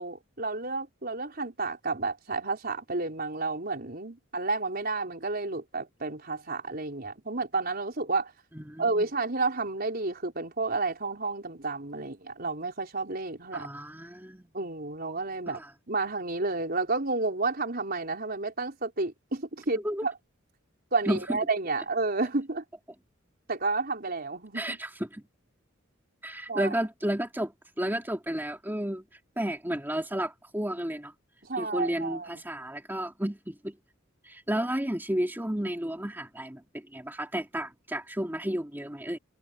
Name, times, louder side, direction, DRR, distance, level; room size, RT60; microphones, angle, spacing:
voice 1, 0.0-8.3 8.8-13.7 14.5-15.6 15.9-20.1 20.9-22.6 23.5-24.8 26.5-26.7 31.4-32.3, right 3 dB, 50° right, 4.7 m, -31 dB
voice 2, 8.5-9.0 13.5-14.5 15.5-15.7 19.8-20.1 21.0-21.2 24.5-25.2 26.2-27.5 27.8-29.0 29.4-31.1 31.6-33.7 34.2-39.2, right 1 dB, 10° right, 2.6 m, -32 dB
head